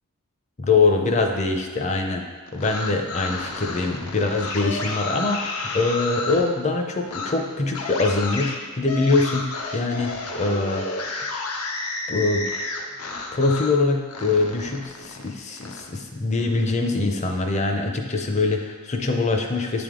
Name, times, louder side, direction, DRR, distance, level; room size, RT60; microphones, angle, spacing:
voice 1, 0.6-2.2 2.5-10.1 10.4-10.9 12.1-12.5 13.3-19.8, left 3 dB, 30° left, 3 dB, 0.5 m, -23 dB
sound 1, 2.5-6.5 7.1-7.3 7.7-13.8 14.1-15.8, left 3 dB, 85° left, 0.7 m, -31 dB
8.1 x 3.5 x 3.7 m, 1.5 s
head